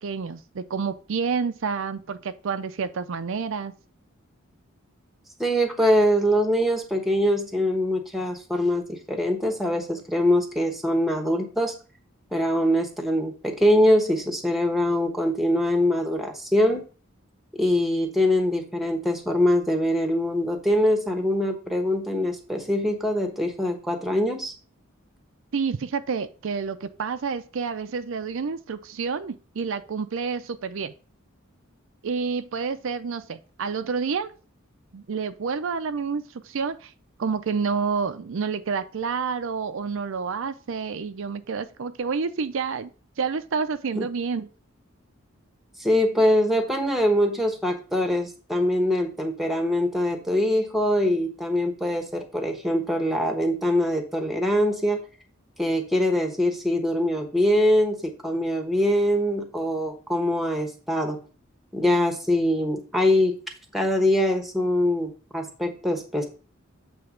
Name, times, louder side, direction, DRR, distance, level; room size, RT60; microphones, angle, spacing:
voice 1, 0.0-3.7 25.5-30.9 32.0-34.3 34.9-36.9 37.2-42.9 43.2-44.5, right 5 dB, 70° right, 10 dB, 0.5 m, -29 dB
voice 2, 5.4-11.7 12.3-16.8 17.6-24.5 43.9-44.1 45.8-55.0 55.6-61.2 61.7-63.4 63.7-66.3, left 1 dB, ahead, 4 dB, 1.1 m, -23 dB
7.9 x 3.4 x 5.0 m, 0.36 s
head